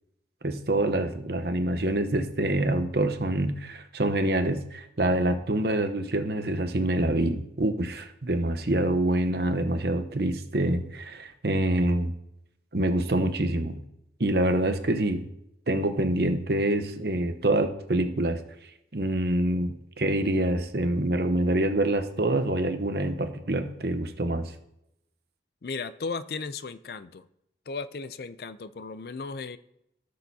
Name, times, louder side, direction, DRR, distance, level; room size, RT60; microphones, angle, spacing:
voice 1, 0.4-12.1 12.7-13.8 14.2-15.2 15.7-18.4 18.9-24.5, right 1 dB, 60° right, 8 dB, 0.9 m, -26 dB
voice 2, 25.6-27.2 27.7-29.6, left 4 dB, 60° left, 13 dB, 0.5 m, -35 dB
16.5 x 6.5 x 2.8 m, 0.81 s
head